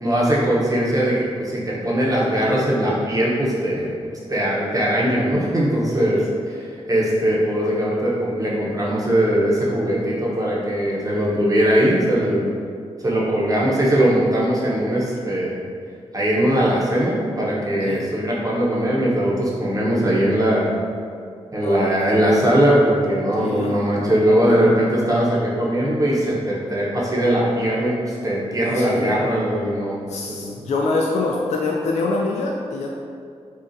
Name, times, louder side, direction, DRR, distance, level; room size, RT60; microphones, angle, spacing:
voice 1, 0.0-3.9 4.3-6.6 6.9-12.6 13.0-15.6 16.1-20.7 21.5-30.6, equal, 30° right, -6 dB, 0.8 m, -20 dB
voice 2, 21.6-22.0 23.4-23.8 28.6-29.2 30.1-32.9, left 3 dB, 85° left, -1 dB, 0.4 m, -25 dB
5.0 x 2.4 x 2.6 m, 2.2 s
cardioid pair, 80°, 11 cm